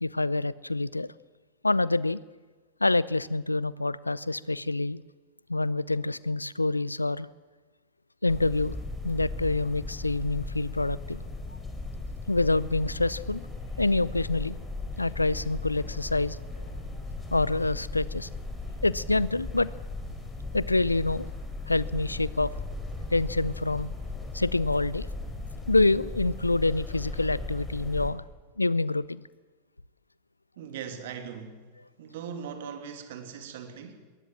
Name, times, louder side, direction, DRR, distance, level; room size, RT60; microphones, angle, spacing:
voice 1, 0.0-1.1 1.6-2.2 2.8-5.0 5.5-7.3 8.2-8.8 9.0-11.2 12.3-13.4 13.8-14.6 15.0-16.4 17.3-18.3 18.8-19.7 20.5-21.3 21.7-22.5 23.1-23.9 24.3-25.1 25.7-28.2 28.6-29.2, left 2 dB, 85° left, 20 dB, 0.6 m, -26 dB
sound 1, 8.3-28.1, left 3 dB, 10° left, 4.1 m, -37 dB
voice 2, 30.6-31.7 32.0-34.0, right 7 dB, 55° right, 7 dB, 2.8 m, -40 dB
21.5 x 18.5 x 7.5 m, 1.3 s
figure-of-eight pair, 90°, 0 cm